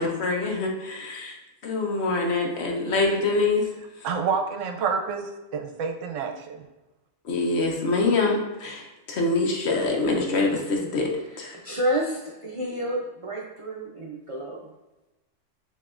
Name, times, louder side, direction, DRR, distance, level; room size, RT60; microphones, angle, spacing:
voice 1, 0.0-1.3 1.6-3.6 7.3-8.8 9.1-11.1 11.4-11.5, left 3 dB, 60° left, 0 dB, 1.0 m, -24 dB
voice 2, 4.0-6.6, right 5 dB, 80° right, 4 dB, 0.9 m, -28 dB
voice 3, 11.2-14.6, equal, 55° right, -3 dB, 0.3 m, -30 dB
6.8 x 2.9 x 2.4 m, 1.0 s
omnidirectional pair, 1.3 m